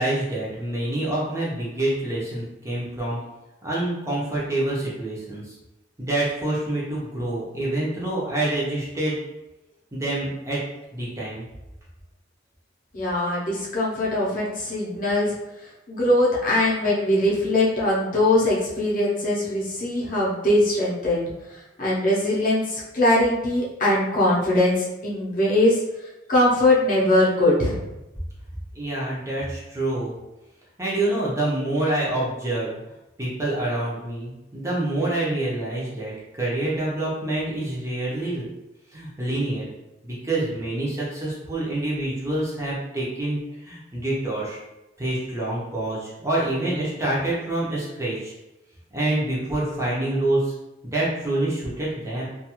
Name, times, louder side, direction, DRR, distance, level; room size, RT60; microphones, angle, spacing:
voice 1, 0.0-3.2 3.6-5.6 6.0-9.2 9.9-10.6 10.9-11.4 28.7-30.1 30.8-32.8 33.2-38.5 38.9-39.7 40.0-44.6 45.0-48.3 48.9-50.5 50.9-52.3, right 1 dB, 15° right, -6 dB, 0.6 m, -26 dB
voice 2, 12.9-15.4 15.9-21.3 21.8-25.8 26.3-27.8, left 1 dB, 45° left, -5 dB, 0.7 m, -21 dB
2.4 x 2.3 x 2.9 m, 0.96 s
head